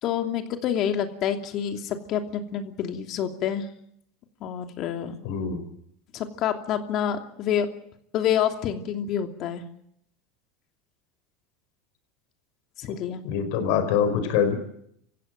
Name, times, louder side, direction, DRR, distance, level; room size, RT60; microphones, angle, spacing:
voice 1, 0.0-3.7 4.4-5.1 6.1-7.7 8.1-9.6 12.8-13.2, left 9 dB, 50° left, 6 dB, 2.8 m, -27 dB
voice 2, 5.2-5.6 13.2-14.6, left 7 dB, 70° left, 9 dB, 4.8 m, -24 dB
27.0 x 15.5 x 9.3 m, 0.72 s
supercardioid pair, 110°, 0 cm